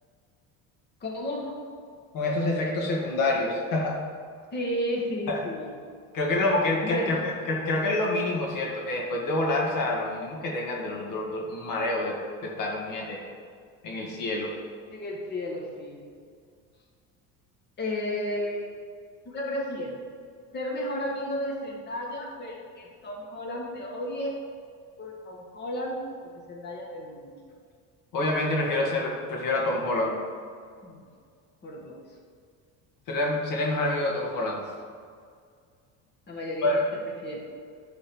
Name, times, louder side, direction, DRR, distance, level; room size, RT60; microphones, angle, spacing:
voice 1, 1.0-1.6 4.5-5.7 6.8-7.2 14.9-16.0 17.8-18.7 19.3-20.0 20.5-24.3 25.0-27.3 30.8-31.0 31.6-32.0 36.3-36.8 37.2-37.4, left 1 dB, 30° left, -2 dB, 1.7 m, -33 dB
voice 2, 2.1-4.0 5.3-5.4 6.1-13.2 13.8-14.5 28.1-30.2 33.1-34.6 36.6-36.8, left 2 dB, 65° left, -2 dB, 2.0 m, -27 dB
10.5 x 4.1 x 6.2 m, 2.1 s
cardioid pair, 115°, 34 cm